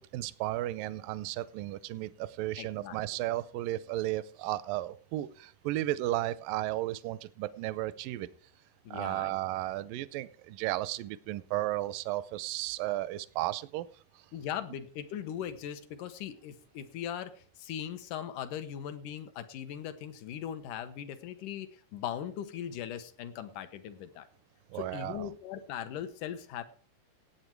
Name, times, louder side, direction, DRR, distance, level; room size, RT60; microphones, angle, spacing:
voice 1, 0.0-8.3 8.9-13.9 24.7-25.3, right 16 dB, 80° right, 16 dB, 2.3 m, -34 dB
voice 2, 2.6-3.0 8.9-9.3 14.3-24.3 24.7-26.6, left 9 dB, 75° left, 11 dB, 2.5 m, -39 dB
17.0 x 8.7 x 4.6 m, 0.43 s
omnidirectional pair, 3.9 m